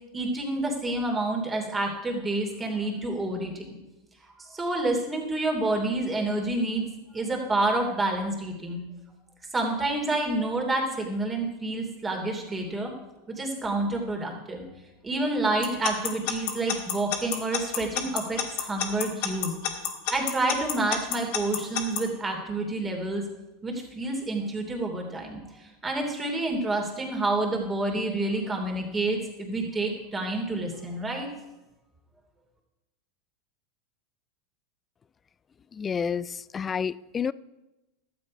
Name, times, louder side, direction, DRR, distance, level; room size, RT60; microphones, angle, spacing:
voice 1, 0.1-3.6 4.4-6.9 7.1-8.8 9.5-12.9 13.3-14.7 15.0-19.5 20.1-23.3 23.6-31.3, right 2 dB, 20° right, 2.8 m, -28 dB
Alarm / Clock, 15.6-22.0, left 10 dB, 65° left, 1.8 m, -28 dB
voice 2, 35.7-37.3, left 6 dB, 25° left, 0.3 m, -29 dB
12.0 x 7.8 x 5.2 m
hypercardioid pair, 105°, 0 cm